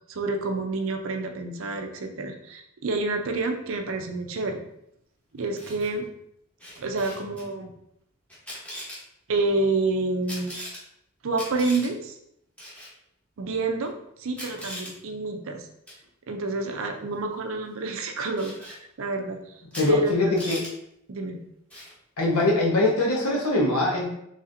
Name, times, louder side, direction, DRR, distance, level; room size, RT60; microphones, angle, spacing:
voice 1, 0.1-4.6 5.3-6.1 6.8-7.7 9.3-10.5 11.2-12.2 13.4-15.7 16.3-20.5 21.1-21.4, right 3 dB, 65° right, 4 dB, 0.5 m, -28 dB
Camera, 5.4-5.9 6.6-7.4 8.3-9.0 10.3-10.8 11.3-11.9 12.6-12.9 13.9-14.0 14.3-14.9 15.9-16.0 18.4-18.8 19.7-19.9 20.1-20.7 21.7-22.0, equal, 5° left, 1.0 m, -39 dB
voice 2, 19.8-20.6 22.2-24.0, left 2 dB, 85° left, -2 dB, 1.1 m, -22 dB
4.1 x 3.3 x 2.6 m, 0.78 s
head